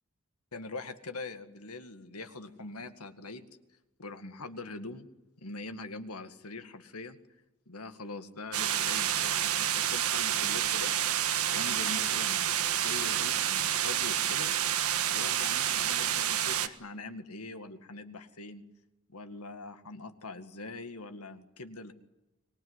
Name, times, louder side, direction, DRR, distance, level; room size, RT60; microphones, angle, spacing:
voice 1, 0.5-3.4 4.0-5.1 5.4-7.2 7.7-10.9 11.5-14.5 15.1-18.6 19.1-21.9, left 3 dB, 85° left, 9 dB, 2.0 m, -43 dB
sound 1, 8.5-16.7, right 10 dB, 80° right, 1.5 m, -29 dB
25.0 x 20.0 x 9.8 m, 0.97 s
head